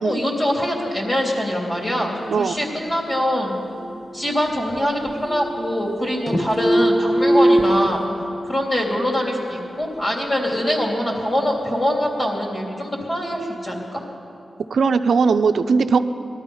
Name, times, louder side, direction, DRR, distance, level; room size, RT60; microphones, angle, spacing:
voice 1, 0.0-3.5 4.1-8.0 8.4-14.0, equal, 30° left, -1 dB, 3.2 m, -23 dB
sound 1, 3.8-4.8 5.1-6.0 6.3-7.9, right 1 dB, 15° left, 1.1 m, -20 dB
voice 2, 14.7-16.0, right 5 dB, 75° right, 8 dB, 0.6 m, -18 dB
20.0 x 12.5 x 5.6 m, 2.6 s
wide cardioid pair, 100°, 0 cm